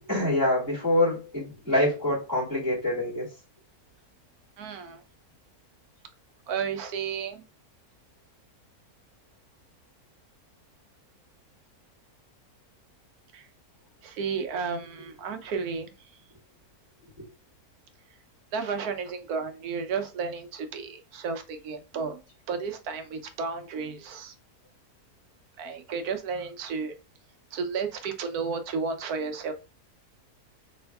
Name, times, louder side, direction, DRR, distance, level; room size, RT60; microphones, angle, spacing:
voice 1, 0.1-3.3 17.2-17.3, left 1 dB, 10° right, -8 dB, 2.2 m, -25 dB
voice 2, 4.6-5.0 6.5-7.4 13.3-13.4 14.0-15.9 18.5-22.2 22.5-24.3 25.6-26.9 27.5-29.5, right 5 dB, 85° right, 7 dB, 1.2 m, -32 dB
3.4 x 3.1 x 3.3 m, 0.30 s
omnidirectional pair, 1.6 m